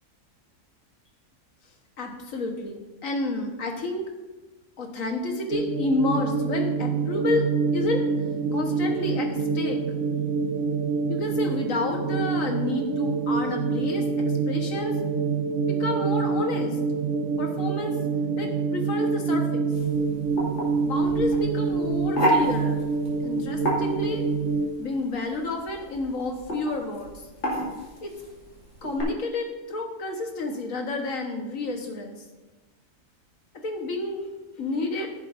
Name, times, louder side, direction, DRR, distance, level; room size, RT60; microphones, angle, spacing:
voice 1, 2.0-4.1 4.8-8.1 8.5-9.8 11.1-15.0 15.7-16.8 17.4-18.0 18.4-19.7 20.8-22.8 23.2-24.3 24.8-27.1 28.0-28.1 28.8-32.2 33.6-34.3 34.6-35.1, left 2 dB, 75° left, 3 dB, 1.7 m, -30 dB
sound 1, 5.5-24.7, right 4 dB, 60° right, 0.9 m, -26 dB
sound 2, 19.7-29.0, right 1 dB, 55° left, 2.6 m, -31 dB
15.0 x 7.4 x 2.6 m, 1.2 s
omnidirectional pair, 1.4 m